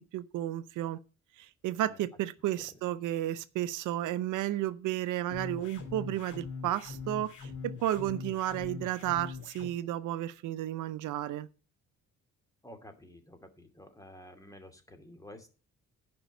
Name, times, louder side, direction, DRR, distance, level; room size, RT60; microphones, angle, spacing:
voice 1, 0.1-1.0 1.4-11.5, right 13 dB, 85° right, 0.7 m, -33 dB
sound 1, 5.3-9.7, left 5 dB, 75° left, 3.1 m, -42 dB
voice 2, 12.6-15.5, left 1 dB, 10° left, 2.5 m, -51 dB
10.5 x 5.3 x 8.0 m
cardioid pair, 90°, 30 cm